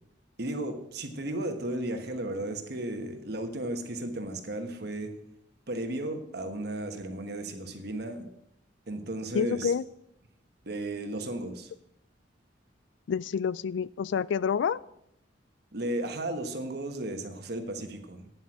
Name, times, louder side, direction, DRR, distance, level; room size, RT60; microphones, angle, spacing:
voice 1, 0.4-5.1 5.7-8.3 8.9-9.7 10.7-11.7 15.7-18.3, right 1 dB, 55° right, 6 dB, 1.3 m, -34 dB
voice 2, 9.3-9.8 13.1-14.8, left 7 dB, 70° left, 21 dB, 0.3 m, -28 dB
9.5 x 7.7 x 6.0 m, 0.79 s
head